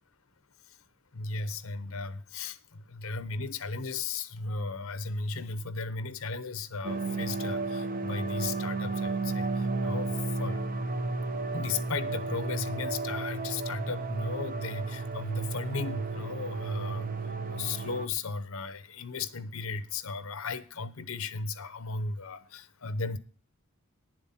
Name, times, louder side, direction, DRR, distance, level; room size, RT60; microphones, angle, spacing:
voice 1, 1.1-10.6 11.5-17.1 17.5-23.2, left 4 dB, 75° left, 0.9 m, -36 dB
sound 1, 6.8-18.1, right 3 dB, 40° right, 0.8 m, -33 dB
10.5 x 7.5 x 5.8 m
head